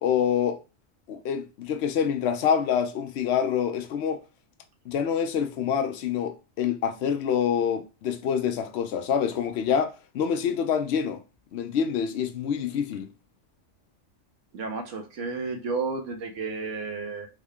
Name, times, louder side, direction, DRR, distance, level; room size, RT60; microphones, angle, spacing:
voice 1, 0.0-0.6 1.1-4.2 4.9-11.2 11.5-13.1, left 8 dB, 65° left, 0.8 m, -26 dB
voice 2, 14.5-17.3, right 4 dB, 75° right, 1.2 m, -32 dB
3.6 x 2.2 x 3.5 m
omnidirectional pair, 1.3 m